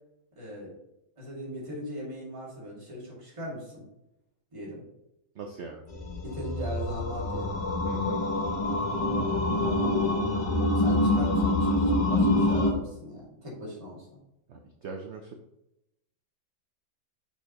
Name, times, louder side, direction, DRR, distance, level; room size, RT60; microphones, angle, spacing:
voice 1, 0.4-0.8 1.2-3.9 4.5-4.8 6.2-7.6 9.5-10.4 10.7-14.2, left 1 dB, 15° right, -5 dB, 2.1 m, -39 dB
voice 2, 5.3-5.8 7.9-8.2 14.5-15.3, right 4 dB, 65° right, 3 dB, 0.7 m, -41 dB
sound 1, 5.9-12.7, left 1 dB, 50° left, 0.4 m, -26 dB
6.2 x 5.5 x 3.0 m, 0.86 s
omnidirectional pair, 1.9 m